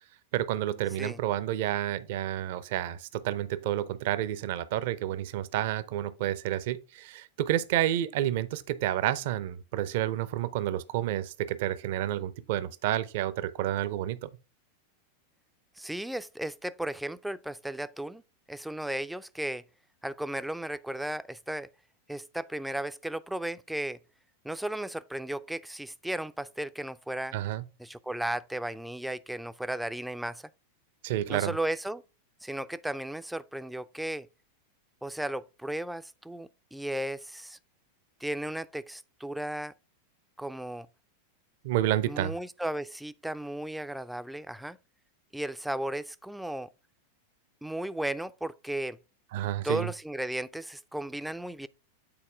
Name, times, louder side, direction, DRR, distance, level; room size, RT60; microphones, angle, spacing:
voice 1, 0.3-14.3 27.3-27.6 31.0-31.5 41.6-42.3 49.3-49.9, right 13 dB, 50° right, 0.6 m, -30 dB
voice 2, 15.8-18.2 18.5-19.6 20.0-21.7 22.1-24.0 24.4-27.3 27.8-30.5 31.3-32.0 32.4-34.3 35.0-37.6 38.2-39.7 40.4-40.9 42.1-44.8 45.3-46.7 47.6-49.0 49.6-51.7, right 1 dB, 5° right, 0.4 m, -35 dB
8.8 x 4.2 x 3.5 m
figure-of-eight pair, 90°, 0 cm